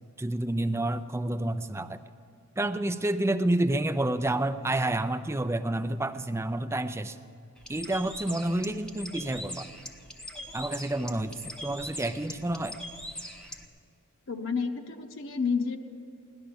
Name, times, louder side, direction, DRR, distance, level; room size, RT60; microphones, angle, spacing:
voice 1, 0.2-2.0 2.6-7.2 7.7-9.7 10.5-12.8, right 1 dB, 10° right, 12 dB, 0.4 m, -29 dB
Bird, 7.6-13.6, left 1 dB, 5° left, 0.9 m, -42 dB
voice 2, 14.3-15.8, left 5 dB, 60° left, 5 dB, 0.9 m, -30 dB
17.5 x 11.5 x 7.0 m, 2.5 s
head